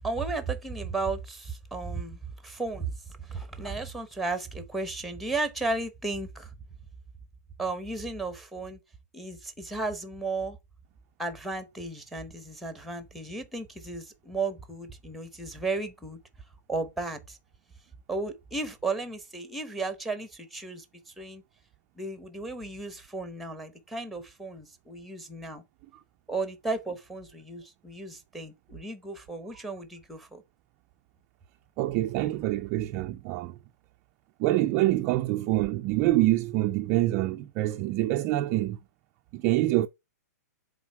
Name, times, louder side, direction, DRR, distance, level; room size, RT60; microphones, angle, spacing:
voice 1, 0.0-6.5 7.6-8.8 9.1-10.6 11.2-16.2 16.7-17.4 18.1-21.4 22.0-25.6 26.3-30.4, right 3 dB, ahead, 0.8 m, -34 dB
voice 2, 31.8-33.6 34.4-38.8 39.3-39.9, right 16 dB, 25° right, 0.3 m, -26 dB
7.1 x 4.1 x 4.6 m
hypercardioid pair, 160°, 9 cm